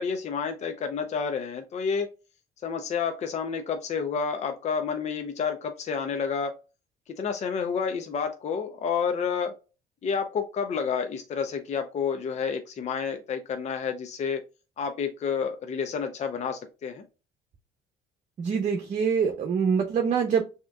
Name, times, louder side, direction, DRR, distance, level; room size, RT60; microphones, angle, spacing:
voice 1, 0.0-2.1 2.6-6.5 7.2-9.5 10.0-14.4 14.8-17.0, left 6 dB, 40° left, 6 dB, 0.7 m, -29 dB
voice 2, 18.4-20.4, right 6 dB, 45° right, 2 dB, 0.8 m, -25 dB
6.1 x 2.9 x 2.3 m, 0.31 s
cardioid pair, 110°, 17 cm